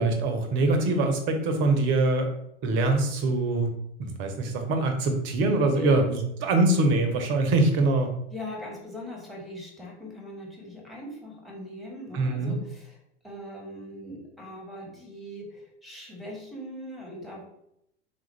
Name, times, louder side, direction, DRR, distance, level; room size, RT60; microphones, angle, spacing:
voice 1, 0.0-2.3 2.6-3.7 4.0-8.1 12.1-12.6, right 2 dB, 35° right, 5 dB, 0.7 m, -23 dB
voice 2, 8.3-13.0 13.2-17.4, left 1 dB, ahead, -1 dB, 1.0 m, -40 dB
3.7 x 2.5 x 3.1 m, 0.77 s
figure-of-eight pair, 85°, 35 cm